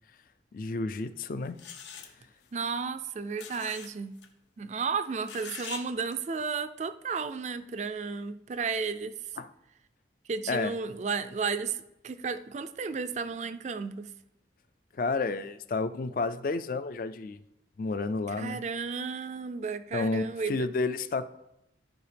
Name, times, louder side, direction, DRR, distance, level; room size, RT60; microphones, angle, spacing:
voice 1, 0.5-1.6 9.4-9.5 10.5-10.7 15.0-17.4 17.8-18.6 19.9-21.3, left 3 dB, 50° left, 13 dB, 0.4 m, -31 dB
sound 1, 1.0-1.1 1.6-2.1 3.4-3.9 4.2-4.3 5.2-5.8 6.1-6.2, left 6 dB, 85° left, 1.0 m, -42 dB
voice 2, 2.5-4.2 4.6-9.1 10.3-14.1 18.3-20.7, right 5 dB, 40° right, 12 dB, 0.3 m, -33 dB
13.5 x 4.8 x 3.4 m, 0.87 s
head